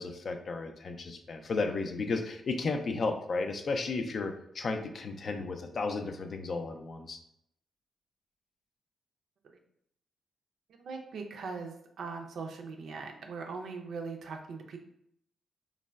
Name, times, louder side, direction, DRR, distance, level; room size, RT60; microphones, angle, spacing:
voice 1, 0.0-7.2, left 3 dB, 55° left, 6 dB, 0.3 m, -33 dB
voice 2, 10.8-14.8, right 4 dB, 75° right, 3 dB, 0.4 m, -40 dB
3.2 x 2.1 x 2.2 m, 0.73 s
supercardioid pair, 55°, 0 cm